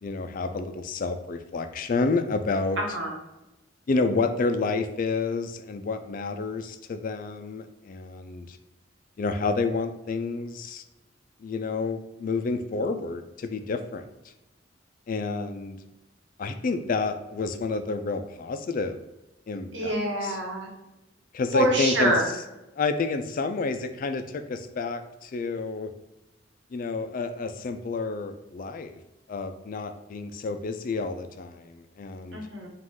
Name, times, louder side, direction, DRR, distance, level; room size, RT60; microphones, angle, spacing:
voice 1, 0.0-2.8 3.9-8.6 9.2-10.8 11.4-14.1 15.1-15.8 16.4-19.0 19.5-19.9 20.2-20.3 21.3-22.1 22.8-25.9 26.7-29.0 29.3-32.4, left 3 dB, 45° left, 9 dB, 0.4 m, -29 dB
voice 2, 2.8-3.1 19.7-20.7 21.5-22.3 32.3-32.7, right 1 dB, 70° right, -1 dB, 1.3 m, -26 dB
5.0 x 2.4 x 3.6 m, 0.98 s
head